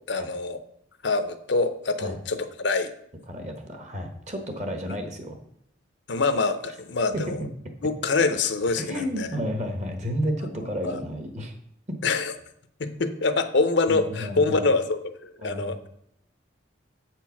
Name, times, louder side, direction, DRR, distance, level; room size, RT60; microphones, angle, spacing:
voice 1, 0.1-0.6 1.0-2.9 4.9-5.0 6.1-7.4 7.8-9.3 10.8-11.0 12.0-12.3 12.8-15.8, left 3 dB, 65° left, 10 dB, 0.6 m, -25 dB
voice 2, 3.3-5.3 7.3-7.5 8.8-11.5 11.9-12.0 13.9-14.7 15.4-15.7, equal, 35° right, 5 dB, 1.2 m, -31 dB
7.7 x 4.5 x 5.8 m, 0.71 s
head